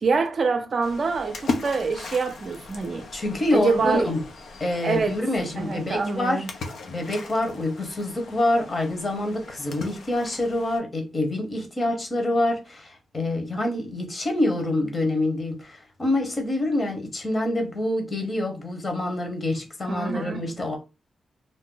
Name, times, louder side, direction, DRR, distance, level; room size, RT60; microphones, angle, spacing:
voice 1, 0.0-3.1 3.5-4.1 4.8-5.2 5.6-6.5 19.9-20.4, right 4 dB, 45° right, 0.5 m, -25 dB
Splash splatter, 0.8-10.8, left 3 dB, 80° left, 0.5 m, -38 dB
voice 2, 3.1-4.2 4.6-6.4 6.9-20.8, left 1 dB, 35° left, 0.9 m, -26 dB
2.6 x 2.1 x 3.7 m
wide cardioid pair, 115°, 0 cm